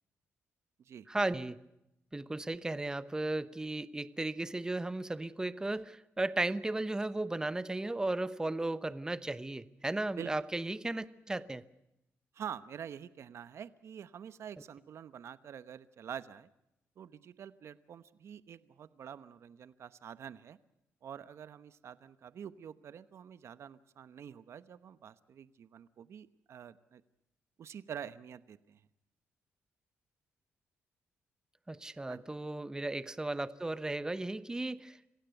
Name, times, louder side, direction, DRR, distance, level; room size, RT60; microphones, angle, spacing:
voice 1, 1.1-1.6 2.1-11.6 31.7-35.1, right 2 dB, 15° right, 15 dB, 1.0 m, -35 dB
voice 2, 12.3-16.5 17.0-20.6 21.0-27.0 27.6-28.8 32.1-32.2, right 8 dB, 60° right, 14 dB, 1.0 m, -47 dB
26.0 x 16.5 x 7.9 m, 0.83 s
cardioid pair, 95°, 5 cm